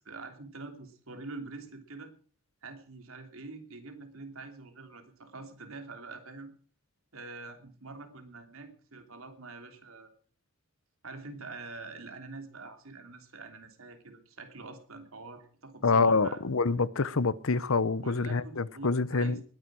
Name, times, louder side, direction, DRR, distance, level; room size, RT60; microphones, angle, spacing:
voice 1, 0.0-2.1 2.6-6.5 7.1-10.1 11.0-16.4 18.0-19.4, right 3 dB, 85° right, 3.1 m, -45 dB
voice 2, 15.8-19.4, left 4 dB, 80° left, 0.8 m, -26 dB
20.0 x 10.0 x 6.2 m
head